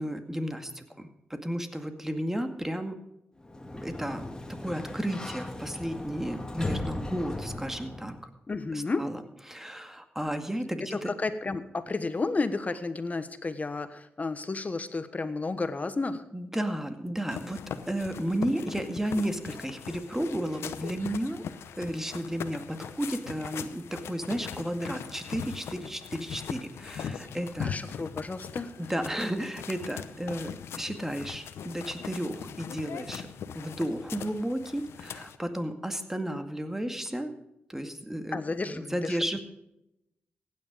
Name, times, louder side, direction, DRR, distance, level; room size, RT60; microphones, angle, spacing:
voice 1, 0.0-3.0 3.7-8.1 8.7-9.2 9.5-11.1 16.3-21.4 21.8-27.8 28.8-33.3 33.5-37.3 37.7-38.4 38.7-39.4, equal, 10° right, 7 dB, 2.1 m, -33 dB
Sliding door, 3.4-8.3, left 1 dB, 15° left, 2.1 m, -37 dB
voice 2, 8.5-9.0 10.9-16.2 27.6-28.7 38.3-39.4, left 3 dB, 35° left, 11 dB, 1.3 m, -32 dB
sound 1, 17.3-35.4, left 7 dB, 85° left, 0.8 m, -40 dB
16.0 x 9.8 x 5.2 m, 0.85 s
cardioid pair, 60°, 4 cm